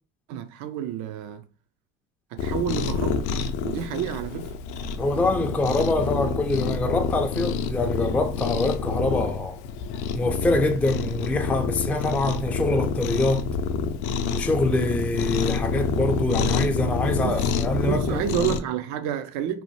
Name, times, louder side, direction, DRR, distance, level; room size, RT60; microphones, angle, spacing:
voice 1, 0.3-1.5 2.3-3.2 3.6-4.5 17.2-17.5 17.9-19.6, right 9 dB, 70° right, 0.5 m, -29 dB
Cat, 2.4-18.6, left 5 dB, 75° left, 0.5 m, -27 dB
voice 2, 5.0-9.6 10.1-13.5 14.3-18.2, left 2 dB, 5° left, 0.3 m, -25 dB
2.8 x 2.1 x 3.0 m
supercardioid pair, 80°, 31 cm